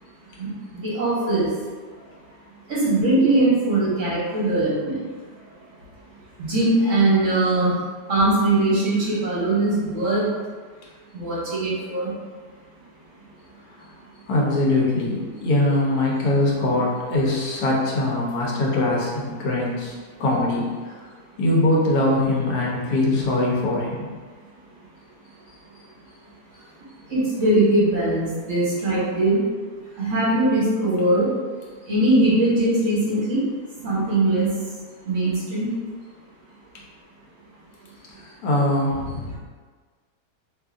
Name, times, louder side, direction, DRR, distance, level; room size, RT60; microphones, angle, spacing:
voice 1, 0.8-1.5 2.7-5.0 6.4-7.7 8.1-10.2 11.1-12.1 27.1-29.4 30.0-31.3 31.9-33.4 33.8-34.5 35.1-35.7, right 2 dB, 55° right, -7 dB, 1.3 m, -20 dB
voice 2, 14.3-20.9 21.4-24.0 38.4-39.4, left 2 dB, 80° left, -3 dB, 1.3 m, -22 dB
3.6 x 3.0 x 2.4 m, 1.5 s
omnidirectional pair, 1.7 m